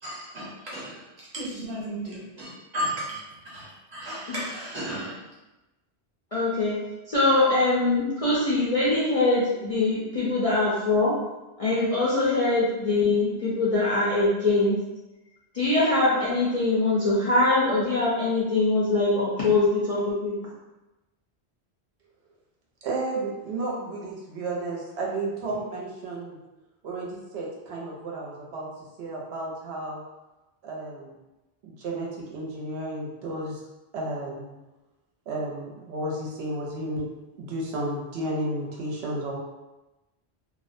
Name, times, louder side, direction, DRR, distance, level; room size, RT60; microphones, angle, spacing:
voice 1, 0.0-3.2 3.5-5.2, equal, 45° right, -7 dB, 0.9 m, -34 dB
voice 2, 6.3-6.8 7.1-11.1 11.6-14.8 15.5-20.3, left 2 dB, 50° left, -8 dB, 0.4 m, -23 dB
voice 3, 22.8-26.4 26.8-28.7 29.0-30.0 30.6-31.2 31.6-33.6 33.9-34.5 35.3-37.1 37.4-39.4, right 2 dB, 80° right, -3 dB, 0.8 m, -32 dB
2.4 x 2.1 x 2.5 m, 1.0 s
omnidirectional pair, 1.1 m